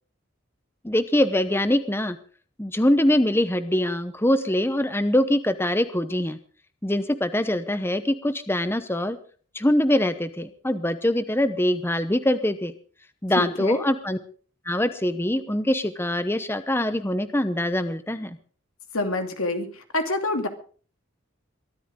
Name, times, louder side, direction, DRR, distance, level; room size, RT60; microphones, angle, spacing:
voice 1, 0.8-2.2 2.6-6.4 6.8-9.2 9.5-12.7 13.2-14.2 14.7-18.4, left 1 dB, 10° left, 12 dB, 0.8 m, -23 dB
voice 2, 13.4-13.8 18.9-20.5, left 2 dB, 90° left, 6 dB, 2.7 m, -27 dB
23.0 x 13.5 x 3.8 m, 0.41 s
head